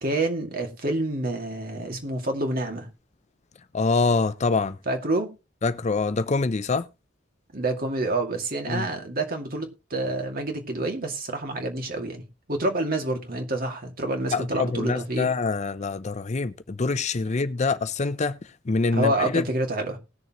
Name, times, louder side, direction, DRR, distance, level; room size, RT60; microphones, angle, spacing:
voice 1, 0.0-2.9 4.9-5.3 7.5-15.3 18.9-20.0, right 2 dB, 50° right, 2.3 m, -28 dB
voice 2, 3.7-4.8 5.6-6.9 8.7-8.9 14.3-19.4, left 3 dB, 35° left, 0.5 m, -25 dB
19.5 x 6.7 x 3.0 m
head